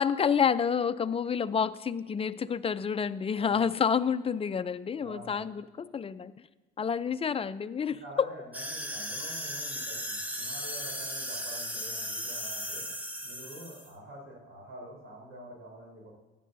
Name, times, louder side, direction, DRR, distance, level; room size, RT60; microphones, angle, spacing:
voice 1, 0.0-6.3 6.8-8.3, left 7 dB, 30° left, 12 dB, 0.5 m, -29 dB
voice 2, 5.0-5.5 7.9-12.9 13.2-16.1, right 1 dB, 80° right, -1 dB, 4.0 m, -47 dB
sound 1, 8.5-13.9, equal, 10° right, 1.2 m, -36 dB
15.0 x 10.5 x 2.7 m, 1.2 s
cardioid pair, 90°, 20 cm